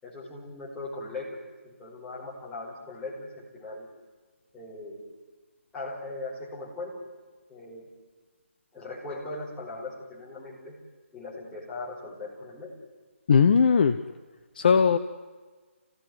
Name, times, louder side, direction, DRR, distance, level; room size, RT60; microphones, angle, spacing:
voice 1, 0.0-1.4 1.6-3.9 4.5-5.1 5.7-7.0 7.5-7.9 8.7-10.8 11.1-12.7, left 2 dB, 5° left, -7 dB, 5.2 m, -39 dB
voice 2, 13.3-14.0 14.6-15.0, left 6 dB, 40° left, 10 dB, 0.8 m, -19 dB
26.5 x 17.0 x 9.6 m, 1.4 s
figure-of-eight pair, 150°, 7 cm